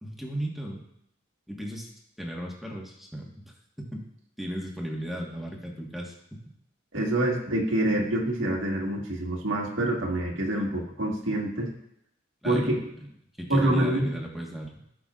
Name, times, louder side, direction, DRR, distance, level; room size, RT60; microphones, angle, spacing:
voice 1, 0.0-0.8 1.5-1.9 2.2-4.1 4.4-6.4 12.4-12.8 13.4-14.8, right 1 dB, ahead, -2 dB, 1.4 m, -36 dB
voice 2, 6.9-11.7 12.4-12.8 13.5-14.1, right 1 dB, 85° right, -1 dB, 1.7 m, -26 dB
16.0 x 6.1 x 2.5 m, 0.77 s
head